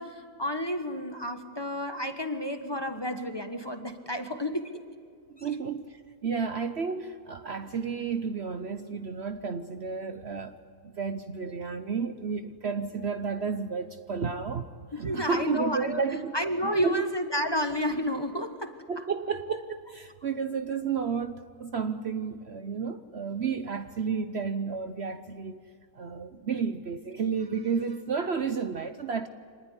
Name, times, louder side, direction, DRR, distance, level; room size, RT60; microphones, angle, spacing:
voice 1, 0.0-4.8 5.4-5.5 14.9-16.0 16.3-19.0, equal, 20° left, 1.3 m, -31 dB
voice 2, 5.3-10.6 10.8-14.7 14.9-16.3 16.6-17.0 18.3-18.4 18.9-25.6 25.9-29.3, right 5 dB, 50° right, 1.0 m, -32 dB
25.5 x 20.0 x 9.7 m
omnidirectional pair, 1.6 m